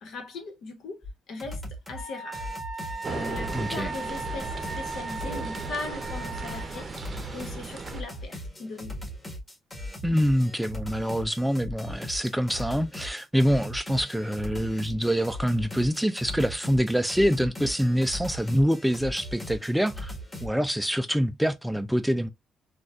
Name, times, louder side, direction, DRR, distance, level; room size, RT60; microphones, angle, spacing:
voice 1, 0.0-1.6 1.9-2.5 3.1-6.9 7.3-9.0, left 3 dB, 70° left, 1.2 m, -39 dB
sound 1, 1.0-1.1 1.4-2.0 2.3-20.5, left 1 dB, 15° left, 1.6 m, -39 dB
Wind instrument woodwind instrument, 1.9-6.9, right 3 dB, 45° left, 1.4 m, -38 dB
sound 2, 3.0-8.0, right 4 dB, 35° right, 0.7 m, -37 dB
voice 2, 3.5-3.9 10.0-20.1 20.4-22.3, equal, 5° right, 0.4 m, -25 dB
4.0 x 2.3 x 2.4 m
cardioid pair, 90°, 0 cm